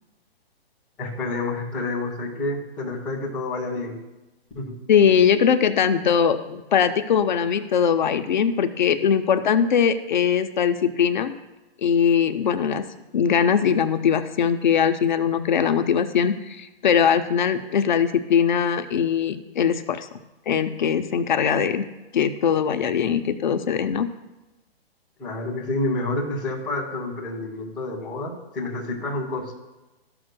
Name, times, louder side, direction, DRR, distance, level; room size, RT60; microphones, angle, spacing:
voice 1, 1.0-4.0 4.5-4.8 25.2-29.5, left 2 dB, ahead, -10 dB, 0.4 m, -29 dB
voice 2, 4.9-11.3 11.8-12.8 13.1-20.1 20.5-21.9 22.1-24.1, left 7 dB, 50° left, 9 dB, 0.6 m, -21 dB
13.5 x 6.1 x 2.2 m, 1.1 s
hypercardioid pair, 155°, 31 cm